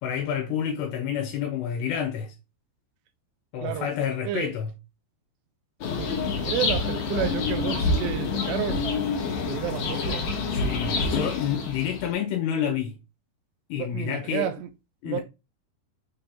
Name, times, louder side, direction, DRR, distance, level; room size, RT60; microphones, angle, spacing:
voice 1, 0.0-2.3 3.5-4.7 10.5-13.0 13.7-14.5 15.0-15.2, left 8 dB, 80° left, 3.0 m, -29 dB
sound 1, 5.8-12.1, left 4 dB, 60° left, 2.0 m, -27 dB
voice 2, 6.0-9.0 9.5-10.3 13.8-14.6 15.0-15.2, right 11 dB, 85° right, 2.7 m, -31 dB
6.8 x 5.2 x 2.8 m
omnidirectional pair, 5.0 m